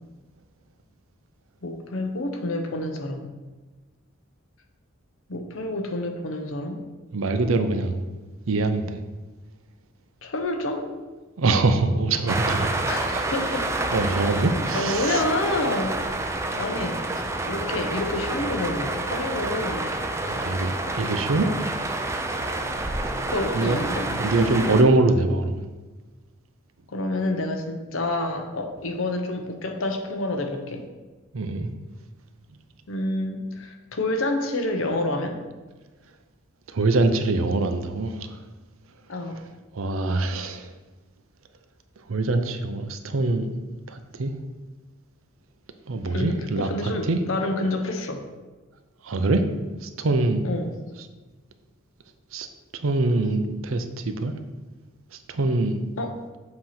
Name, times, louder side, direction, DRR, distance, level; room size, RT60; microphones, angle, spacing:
voice 1, 1.6-3.3 5.3-6.8 10.2-10.9 12.9-13.7 14.3-14.4 14.7-15.9 16.5-19.9 23.3-24.1 26.9-30.8 32.9-35.4 39.1-39.4 46.1-48.2 50.4-50.8 56.0-56.1, left 2 dB, 65° left, 4 dB, 0.8 m, -28 dB
voice 2, 7.1-8.0 8.5-9.0 11.4-12.7 13.1-13.3 13.9-15.2 16.5-16.6 20.3-21.5 23.5-23.8 24.2-25.6 31.3-31.7 36.7-38.4 39.7-40.7 42.1-43.5 43.9-44.3 45.9-47.2 49.0-49.4 49.8-50.5 52.3-52.5 52.8-54.3 55.3-55.8, right 2 dB, 70° right, 8 dB, 0.6 m, -24 dB
sound 1, 12.3-24.8, right 2 dB, 15° right, 0.5 m, -28 dB
7.7 x 3.0 x 5.7 m, 1.2 s
head